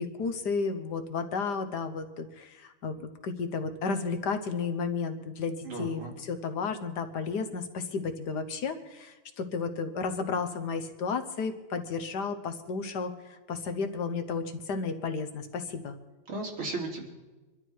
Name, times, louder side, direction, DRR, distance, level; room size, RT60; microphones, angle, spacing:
voice 1, 0.0-15.9, left 5 dB, 55° left, 7 dB, 1.6 m, -33 dB
voice 2, 5.6-6.1 16.3-17.0, right 3 dB, 85° right, -1 dB, 4.0 m, -35 dB
24.5 x 12.5 x 4.7 m, 1.2 s
omnidirectional pair, 2.3 m